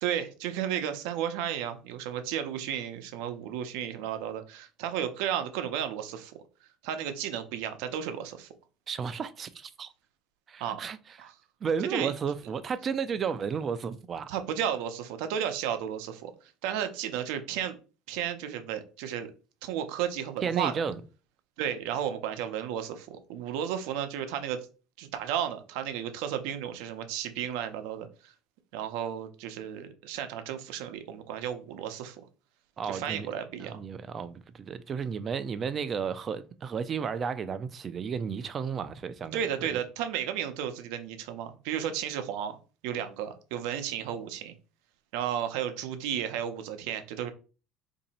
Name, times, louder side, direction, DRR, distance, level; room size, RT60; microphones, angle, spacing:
voice 1, 0.0-6.3 6.8-8.5 10.6-10.8 11.2-11.3 11.9-12.1 14.3-16.3 16.6-17.8 18.1-19.3 19.6-20.7 21.6-24.6 25.0-28.3 28.7-32.2 32.9-33.8 39.3-42.6 42.8-44.5 45.1-47.3, right 9 dB, 80° right, 0.6 m, -33 dB
voice 2, 8.9-9.9 10.5-11.0 11.2-11.3 11.6-14.3 20.4-21.0 32.8-33.3 33.6-39.8, right 6 dB, 35° right, 0.4 m, -33 dB
2.8 x 2.7 x 4.1 m
cardioid pair, 125°, 0 cm